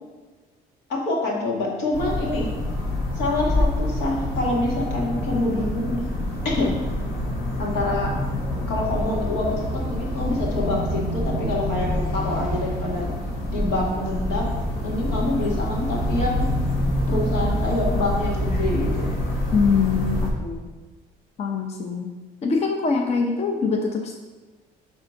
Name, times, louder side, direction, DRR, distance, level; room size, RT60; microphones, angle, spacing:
voice 1, 0.9-2.5 3.1-6.0 6.4-6.8 7.6-8.1 8.7-13.1 13.5-14.5 14.8-16.5 17.1-19.1, left 2 dB, 85° left, -3 dB, 2.1 m, -26 dB
sound 1, 1.9-20.3, left 1 dB, 65° left, 2.0 m, -26 dB
voice 2, 19.5-20.7 21.4-22.1 22.4-24.2, left 5 dB, 40° left, 2 dB, 0.7 m, -23 dB
10.5 x 3.6 x 3.8 m, 1.3 s
cardioid pair, 110°, 17 cm